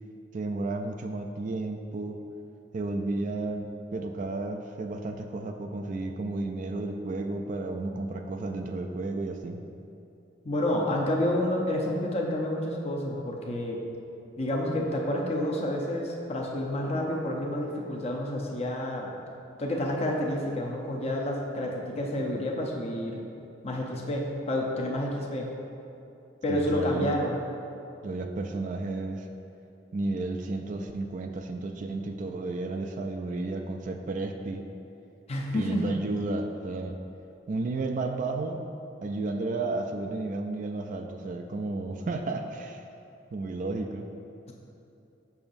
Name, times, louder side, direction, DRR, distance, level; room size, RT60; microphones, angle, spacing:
voice 1, 0.3-2.2 2.7-9.6 26.5-27.2 28.0-29.3 29.9-34.6 35.5-37.0 37.5-38.6 39.0-42.8 43.3-44.1, right 2 dB, 45° right, 4 dB, 0.3 m, -32 dB
voice 2, 10.4-13.8 14.4-19.1 19.6-23.2 23.6-25.5 26.4-27.4 35.3-35.8, left 1 dB, 35° left, -1 dB, 0.6 m, -29 dB
6.9 x 5.9 x 2.6 m, 2.8 s
head